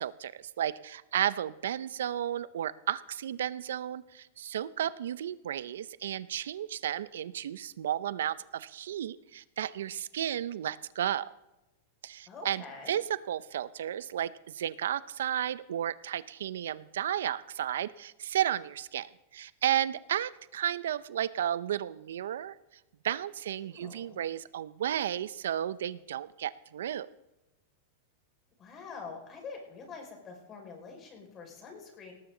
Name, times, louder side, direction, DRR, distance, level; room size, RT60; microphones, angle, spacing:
voice 1, 0.0-11.3 12.0-22.6 23.0-27.1, right 10 dB, 85° right, 17 dB, 0.5 m, -33 dB
voice 2, 12.3-12.9 23.6-24.2 28.6-32.1, left 5 dB, 30° left, 2 dB, 5.3 m, -45 dB
18.5 x 14.0 x 3.9 m, 0.98 s
hypercardioid pair, 125°, 0 cm